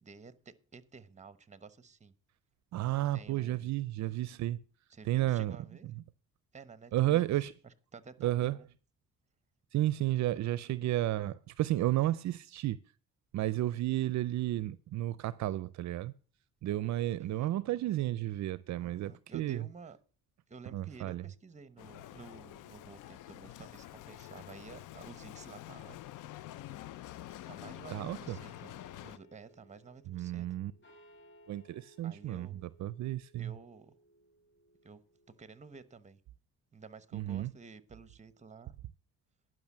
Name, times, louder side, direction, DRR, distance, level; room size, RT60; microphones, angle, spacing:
voice 1, 0.0-2.1 3.1-3.7 4.0-4.1 4.9-5.9 6.5-7.2 7.6-8.7 17.2-17.5 18.8-20.0 20.5-26.0 27.5-28.7 29.0-30.6 32.0-32.6 33.4-34.0 34.8-35.0 35.4-36.2 36.7-38.7, right 5 dB, 25° right, 1.0 m, -52 dB
voice 2, 2.7-4.6 5.1-5.5 6.9-7.5 8.2-8.5 9.7-12.8 13.3-16.1 16.6-19.6 20.7-21.2 27.9-28.4 30.1-30.7 31.5-33.5 37.1-37.5, right 15 dB, 65° right, 0.5 m, -32 dB
Bicycle, 21.8-29.2, left 14 dB, 85° left, 0.6 m, -47 dB
sound 1, 27.2-36.0, right 1 dB, 40° left, 3.5 m, -63 dB
10.5 x 6.1 x 7.3 m
cardioid pair, 90°, 30 cm